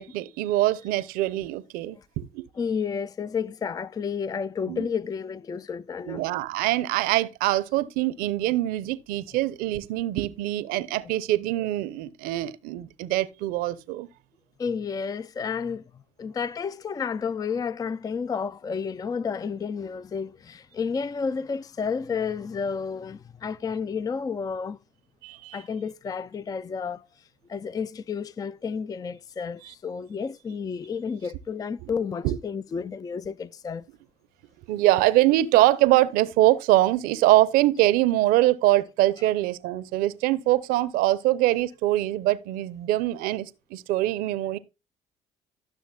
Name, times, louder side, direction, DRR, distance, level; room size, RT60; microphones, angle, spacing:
voice 1, 0.0-2.4 4.7-4.9 6.1-14.1 25.2-25.6 29.6-29.7 31.8-31.9 32.2-32.4 34.7-44.6, right 15 dB, 85° right, 0.7 m, -23 dB
voice 2, 2.6-6.2 14.6-15.8 16.2-24.8 25.5-27.1 27.5-33.8 39.2-39.3, left 6 dB, 25° left, 0.4 m, -31 dB
13.5 x 6.5 x 2.3 m
supercardioid pair, 70°, 15 cm